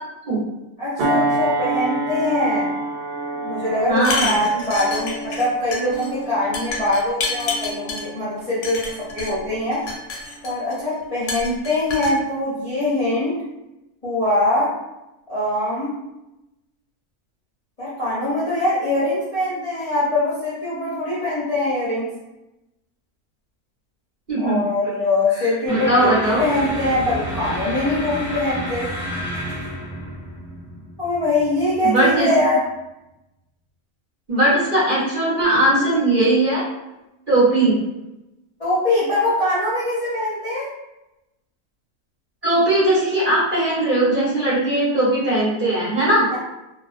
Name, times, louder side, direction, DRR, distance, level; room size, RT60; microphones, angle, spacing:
voice 1, 0.8-2.7 3.3-9.8 10.4-13.4 14.0-14.7 15.3-15.9 17.8-22.1 24.4-26.1 26.4-28.9 31.0-32.6 38.6-40.7 46.3-46.4, left 1 dB, 40° left, -11 dB, 0.5 m, -22 dB
sound 1, 1.0-9.8 10.3-10.5, right 2 dB, 85° right, 1.2 m, -28 dB
voice 2, 3.9-4.3 24.3-24.6 25.4-26.4 31.8-32.3 34.3-36.6 37.3-37.8 42.4-46.3, right 1 dB, 45° right, -9 dB, 0.8 m, -19 dB
sound 2, 4.0-5.5 5.7-6.1 6.5-8.0 8.6-9.3 9.7-10.7 11.3-12.1, left 3 dB, 65° left, 0.8 m, -28 dB
sound 3, 25.7-32.1, equal, 15° right, 1.0 m, -31 dB
2.3 x 2.3 x 2.4 m, 0.95 s
omnidirectional pair, 1.6 m